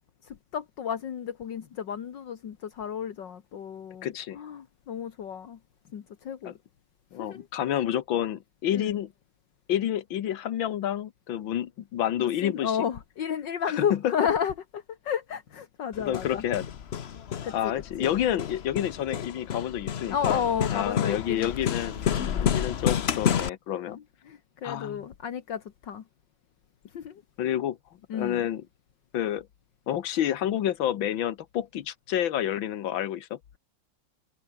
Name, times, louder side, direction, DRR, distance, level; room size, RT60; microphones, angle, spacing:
voice 1, 0.2-5.6 5.9-6.6 7.2-7.5 8.7-8.9 12.2-16.4 17.4-17.7 18.0-18.2 20.1-21.5 22.1-22.6 23.9-26.0 26.9-27.2 28.1-28.5, left 8 dB, 70° left, 2.1 m, -32 dB
voice 2, 4.0-4.4 6.5-6.6 7.1-9.1 9.7-12.7 13.7-14.1 16.0-16.7 17.5-20.4 20.7-22.1 22.4-24.0 24.6-25.1 27.4-27.8 28.1-28.6 29.1-29.5 29.9-33.4, left 11 dB, 90° left, 1.9 m, -29 dB
Hammer, 15.9-23.5, left 8 dB, 50° left, 0.8 m, -30 dB
omnidirectional pair, 2.1 m